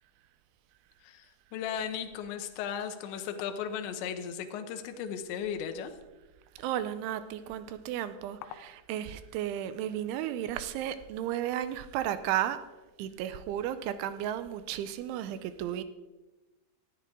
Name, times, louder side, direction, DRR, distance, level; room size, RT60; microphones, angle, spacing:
voice 1, 1.0-6.0, left 8 dB, 75° left, 6 dB, 3.1 m, -36 dB
voice 2, 6.6-12.6 13.0-15.8, right 11 dB, 85° right, 12 dB, 3.0 m, -34 dB
18.5 x 13.5 x 3.7 m, 1.1 s
omnidirectional pair, 5.6 m